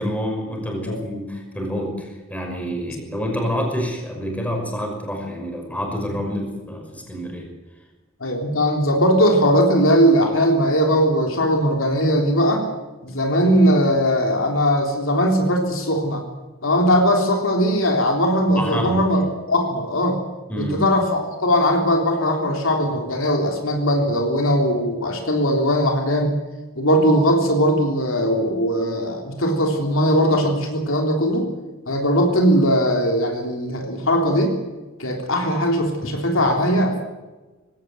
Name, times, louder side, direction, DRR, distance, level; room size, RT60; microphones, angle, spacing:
voice 1, 0.0-7.5 18.6-19.1 20.5-20.8, equal, 5° left, 2 dB, 5.8 m, -27 dB
voice 2, 8.2-12.7 13.0-16.2 16.6-19.2 19.5-20.2 20.6-26.3 26.8-31.5 31.9-34.6 35.0-37.0, equal, 70° left, 2 dB, 3.6 m, -19 dB
20.5 x 17.0 x 9.2 m, 1.2 s
head